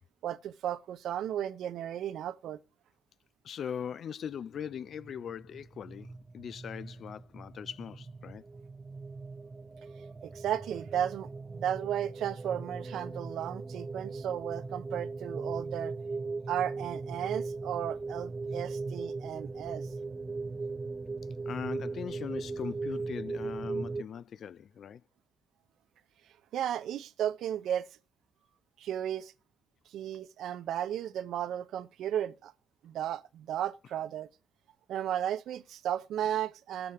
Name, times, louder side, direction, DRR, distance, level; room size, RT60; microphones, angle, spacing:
voice 1, 0.2-2.6 10.2-15.9 16.5-19.9 26.5-27.9 28.8-29.3 29.9-32.5 32.8-34.3 34.9-36.9, right 10 dB, 75° right, 0.7 m, -34 dB
voice 2, 3.4-8.4 21.5-25.0, left 8 dB, 60° left, 0.4 m, -40 dB
sound 1, 4.9-24.0, right 3 dB, 20° right, 0.6 m, -39 dB
19.5 x 6.9 x 3.1 m
cardioid pair, 90°, 0 cm